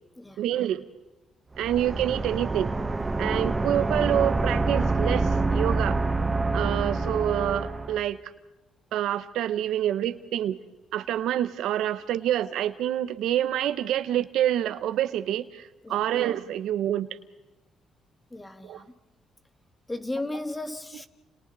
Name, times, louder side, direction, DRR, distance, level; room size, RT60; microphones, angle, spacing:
voice 1, 0.4-0.8 1.6-2.7 3.2-6.0 6.5-8.2 8.9-10.6 10.9-17.1 18.6-18.8 20.9-21.0, right 11 dB, 80° right, 1.0 m, -27 dB
sound 1, 1.5-8.0, right 3 dB, 20° right, 1.1 m, -26 dB
voice 2, 18.3-18.8 19.9-21.1, left 2 dB, 15° left, 1.6 m, -35 dB
29.5 x 29.0 x 4.1 m
cardioid pair, 100°, 0 cm